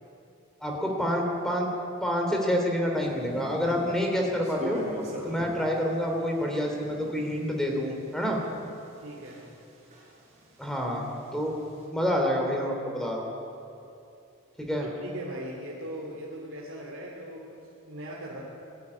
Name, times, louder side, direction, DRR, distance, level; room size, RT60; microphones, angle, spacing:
voice 1, 0.6-1.7 2.0-4.8 5.2-8.4 10.6-11.0 11.3-11.5 11.9-13.3 14.6-14.9, equal, ahead, 1 dB, 3.1 m, -28 dB
sound 1, 2.9-9.7 9.9-11.8, equal, 30° right, 6.6 m, -42 dB
voice 2, 5.1-5.4 8.9-9.5 14.7-18.4, right 1 dB, 65° right, -5 dB, 3.1 m, -40 dB
21.5 x 13.5 x 9.9 m, 2.7 s
head